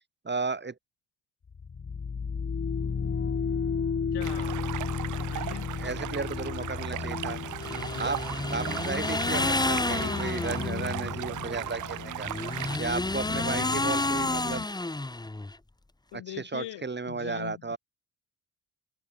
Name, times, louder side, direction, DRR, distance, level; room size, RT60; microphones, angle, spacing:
voice 1, 0.2-0.8 5.8-7.4 8.0-8.2 8.5-12.3 12.8-14.6 16.1-17.8, right 4 dB, 25° right, 2.2 m, -34 dB
sound 1, 1.5-14.6, left 5 dB, 30° left, 1.6 m, -34 dB
voice 2, 4.1-4.6 4.9-5.7 7.8-8.1 16.1-17.8, left 14 dB, 65° left, 3.3 m, -42 dB
Stream, 4.2-12.8, right 14 dB, 45° right, 0.6 m, -37 dB
sound 2, 7.6-10.8 12.2-15.6, left 2 dB, 10° left, 1.3 m, -30 dB
hypercardioid pair, 45°, 44 cm